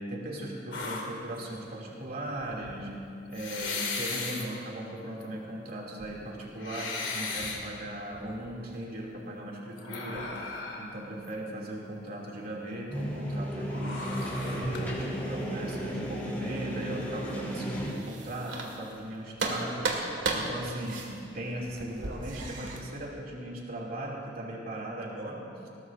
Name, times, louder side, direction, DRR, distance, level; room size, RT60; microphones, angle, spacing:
voice 1, 0.0-3.0 3.3-14.1 14.4-20.0 20.3-25.7, right 1 dB, 55° right, -3 dB, 2.6 m, -38 dB
sound 1, 0.7-1.6 2.4-2.7 3.3-4.5 5.2-5.3 5.8-7.6 8.1-8.5 9.8-11.0 11.2-11.3 13.7-15.1, left 3 dB, 85° left, 2.3 m, -37 dB
sound 2, 12.9-17.9, equal, 10° left, 3.9 m, -34 dB
sound 3, 17.7-19.1 19.4-22.8, right 3 dB, 85° right, 1.9 m, -34 dB
20.5 x 18.0 x 2.6 m, 2.6 s
head